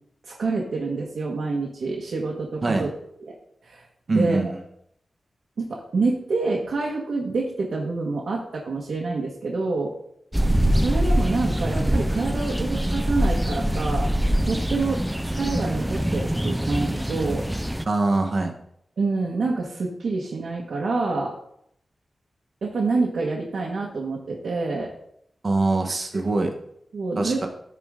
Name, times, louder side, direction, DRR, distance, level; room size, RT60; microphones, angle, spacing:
voice 1, 0.2-2.9 3.2-3.3 3.6-4.4 5.6-9.9 10.7-14.1 14.4-15.0 15.3-17.5 19.0-21.3 22.6-24.9 26.9-27.4, right 3 dB, 70° right, -2 dB, 1.5 m, -27 dB
voice 2, 4.1-4.6 17.9-18.5 25.4-26.5 27.2-27.5, right 2 dB, 35° right, 3 dB, 1.2 m, -23 dB
sound 1, 10.3-17.8, equal, 5° right, 0.4 m, -24 dB
14.5 x 4.9 x 3.7 m, 0.72 s
wide cardioid pair, 165°, 0 cm